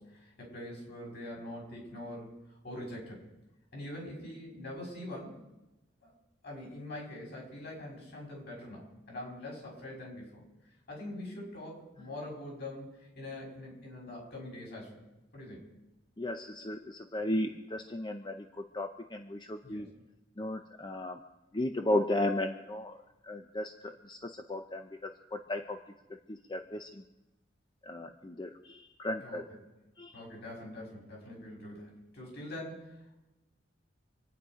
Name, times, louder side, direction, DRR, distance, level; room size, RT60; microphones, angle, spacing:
voice 1, 0.0-2.4 2.6-3.3 3.7-5.4 6.0-6.1 6.4-10.4 10.9-15.0 15.3-15.7 19.6-19.9 29.2-29.4 30.1-33.2, left 1 dB, 60° left, -2 dB, 6.3 m, -44 dB
voice 2, 16.2-19.9 20.4-21.2 21.5-22.9 23.2-25.8 26.1-27.0 27.8-29.4 30.0-30.2, left 1 dB, 25° left, 5 dB, 0.7 m, -35 dB
26.5 x 9.6 x 5.0 m, 1.0 s
head